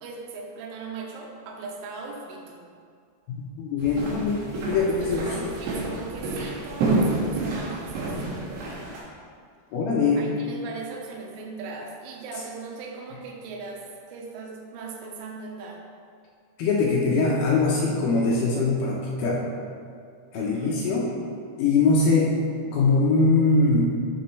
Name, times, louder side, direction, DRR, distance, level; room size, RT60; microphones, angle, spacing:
voice 1, 0.0-2.7 4.8-8.8 10.2-15.8 20.3-20.8, right 4 dB, 85° right, 0 dB, 3.5 m, -39 dB
voice 2, 3.3-5.3 9.7-10.3 16.6-19.5 20.3-21.1 21.6-22.4 22.6-23.9, left 3 dB, 90° left, -4 dB, 2.1 m, -22 dB
sound 1, 3.8-9.0, right 2 dB, 65° right, 3.8 m, -29 dB
11.5 x 6.3 x 3.2 m, 2.2 s
omnidirectional pair, 5.5 m